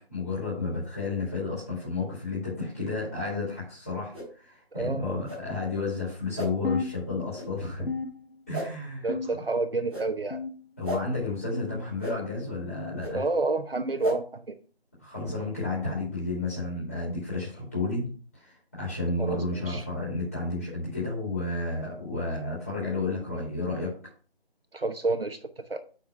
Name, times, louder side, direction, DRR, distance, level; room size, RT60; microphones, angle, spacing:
voice 1, 0.1-7.9 8.5-9.1 10.8-13.2 15.0-23.9, left 3 dB, 15° left, -8 dB, 2.5 m, -32 dB
sound 1, 4.1-4.3 5.2-5.4 6.3-6.5 7.3-7.5 8.5-8.7 9.9-10.1 10.8-11.0 12.0-12.1 13.0-13.1 14.0-14.2, equal, 10° right, 2.7 m, -33 dB
voice 2, 4.7-5.2 9.0-10.4 13.1-14.6 19.2-19.8 24.7-25.8, right 3 dB, 65° right, 7 dB, 1.0 m, -29 dB
sound 2, 6.6-7.5 7.9-8.7 9.1-9.7 10.3-10.9 11.5-11.9 12.7-13.0 14.0-14.2 15.2-15.4 16.4-16.6 17.6-17.8 18.8-19.0 20.1-20.2 21.3-21.4, left 5 dB, 75° left, 1.0 m, -36 dB
6.3 x 5.8 x 5.7 m, 0.39 s
figure-of-eight pair, 180°, 31 cm